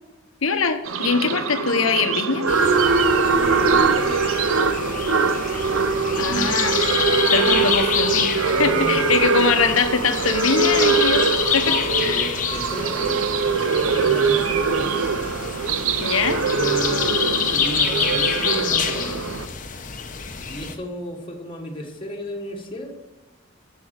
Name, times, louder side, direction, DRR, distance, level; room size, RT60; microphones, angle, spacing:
voice 1, 0.4-2.5 6.1-6.8 7.3-8.3 8.6-12.3 16.0-16.4, left 5 dB, 85° left, 8 dB, 1.0 m, -23 dB
sound 1, 0.9-19.5, right 5 dB, 75° right, 0.7 m, -22 dB
sound 2, 2.5-20.7, left 7 dB, 40° left, 0.9 m, -27 dB
Boat Water vehicle / Alarm, 2.6-13.3, right 3 dB, 35° right, 0.3 m, -31 dB
voice 2, 3.3-5.3 6.2-7.7 8.5-9.2 11.7-15.1 16.5-19.2 20.4-22.9, equal, 25° left, -1 dB, 1.6 m, -34 dB
8.3 x 7.8 x 6.5 m, 1.2 s
head